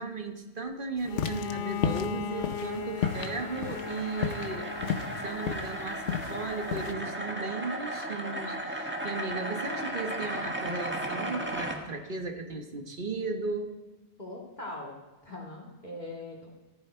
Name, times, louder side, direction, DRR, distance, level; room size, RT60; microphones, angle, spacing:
voice 1, 0.0-4.7 5.2-13.7, right 3 dB, 50° right, 5 dB, 1.5 m, -36 dB
Bowed string instrument, 1.0-5.7, left 8 dB, 55° left, 1.0 m, -38 dB
sound 1, 1.1-6.9, left 7 dB, 80° left, 1.2 m, -33 dB
sound 2, 2.3-11.8, right 1 dB, 10° right, 1.5 m, -36 dB
voice 2, 14.2-15.0 15.2-16.5, left 2 dB, 40° left, -1 dB, 2.4 m, -41 dB
14.5 x 14.5 x 4.5 m, 1.1 s
omnidirectional pair, 1.2 m